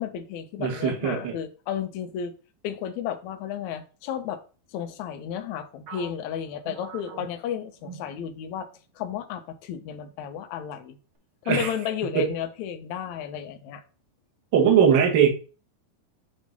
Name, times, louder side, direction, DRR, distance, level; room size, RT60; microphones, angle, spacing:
voice 1, 0.0-2.3 2.6-4.4 4.7-8.7 8.9-11.0 11.4-13.8, left 9 dB, 80° left, 7 dB, 1.7 m, -33 dB
voice 2, 0.6-1.3 11.4-11.7 12.1-12.3 14.5-15.3, right 8 dB, 45° right, -1 dB, 1.6 m, -20 dB
sound 1, 5.9-8.7 9.0-9.2 9.9-10.3, right 5 dB, 70° right, 1.3 m, -44 dB
7.7 x 3.0 x 5.3 m, 0.36 s
omnidirectional pair, 4.0 m